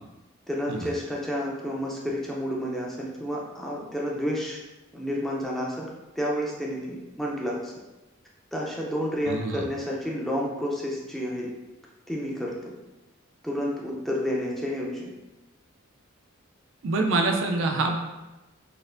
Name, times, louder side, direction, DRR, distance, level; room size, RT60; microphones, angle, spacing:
voice 1, 0.5-4.6 4.9-5.9 6.2-7.7 8.5-11.5 12.1-12.7 13.4-15.1, equal, ahead, -4 dB, 0.4 m, -30 dB
voice 2, 9.3-9.6 16.8-18.2, right 3 dB, 65° right, 3 dB, 0.4 m, -26 dB
4.2 x 2.4 x 2.5 m, 1.1 s
head